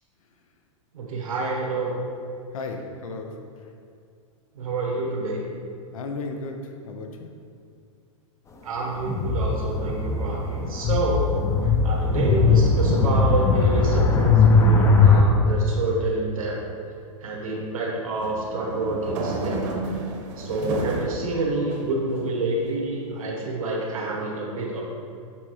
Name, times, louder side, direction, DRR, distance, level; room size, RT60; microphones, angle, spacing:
voice 1, 0.9-2.0 4.5-5.5 8.6-11.3 11.8-16.6 17.2-19.8 20.4-24.8, right 2 dB, 85° right, -2 dB, 1.3 m, -28 dB
voice 2, 2.5-3.3 3.6-3.7 5.9-7.3, left 3 dB, 80° left, 4 dB, 0.7 m, -34 dB
sound 1, 9.1-15.2, left 4 dB, 15° left, 0.6 m, -19 dB
sound 2, 18.2-21.2 21.7-22.6, right 2 dB, 60° right, 1.0 m, -31 dB
7.2 x 4.2 x 3.1 m, 2.4 s
hypercardioid pair, 120°, 17 cm